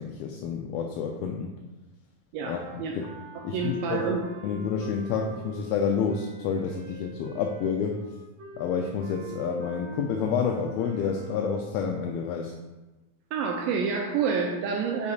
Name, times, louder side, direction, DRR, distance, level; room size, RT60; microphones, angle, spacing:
voice 1, 0.0-1.5 2.4-3.1 3.4-4.1 4.4-8.0 8.6-12.5, left 6 dB, 80° left, 2 dB, 2.2 m, -29 dB
voice 2, 2.3-3.0 3.4-4.2 13.3-15.1, right 5 dB, 80° right, 0 dB, 2.1 m, -28 dB
sound 1, 2.4-11.9, right 1 dB, 55° right, 2.8 m, -46 dB
8.3 x 6.4 x 2.4 m, 1.1 s
omnidirectional pair, 4.4 m